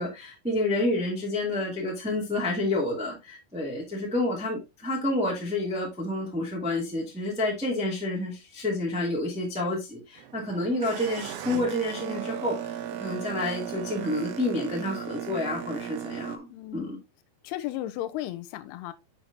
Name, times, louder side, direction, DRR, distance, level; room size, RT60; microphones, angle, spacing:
voice 1, 0.0-17.0, left 1 dB, 5° right, 0.9 m, -29 dB
Boat Water vehicle, 10.2-16.4, right 10 dB, 80° right, 2.4 m, -36 dB
voice 2, 16.5-17.0 17.4-18.9, left 14 dB, 85° left, 2.5 m, -35 dB
6.6 x 6.2 x 2.7 m
omnidirectional pair, 4.9 m